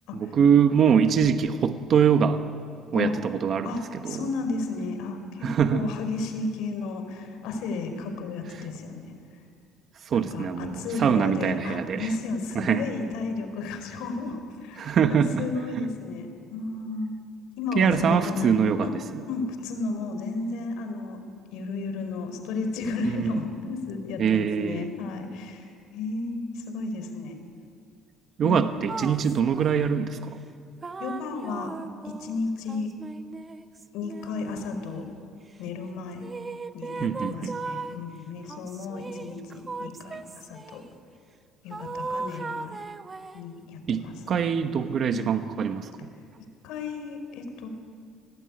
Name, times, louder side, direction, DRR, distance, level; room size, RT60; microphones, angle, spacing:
voice 1, 0.1-2.4 2.9-3.7 4.0-4.2 5.4-5.9 10.0-12.1 12.5-12.8 14.8-15.5 17.8-19.2 23.1-23.4 24.2-24.9 28.4-30.4 37.0-37.6 43.9-46.1, right 7 dB, 40° right, 8 dB, 1.1 m, -23 dB
voice 2, 3.6-9.1 10.1-17.1 17.6-18.9 19.3-21.2 21.5-27.3 28.4-28.6 31.0-31.7 32.2-32.9 33.9-35.1 35.6-36.3 36.7-40.8 41.6-42.8 43.3-44.4 45.0-45.3 46.6-47.7, left 3 dB, 75° left, 6 dB, 4.4 m, -33 dB
sound 1, 28.9-30.0 30.8-35.2 36.2-38.0 38.5-40.9 41.7-43.5, right 4 dB, 20° right, 0.9 m, -37 dB
28.0 x 19.5 x 9.7 m, 2.3 s
cardioid pair, 160°, 0 cm